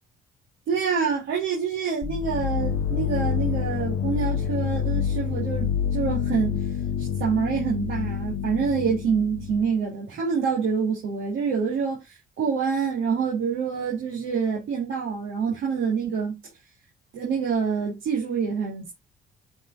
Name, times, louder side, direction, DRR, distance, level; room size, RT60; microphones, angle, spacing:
voice 1, 0.7-6.6 7.0-16.4 17.1-18.9, right 6 dB, 80° right, 3.2 m, -26 dB
sound 1, 2.0-9.7, left 8 dB, 75° left, 0.7 m, -27 dB
7.7 x 5.6 x 2.6 m
cardioid pair, 90°, 20 cm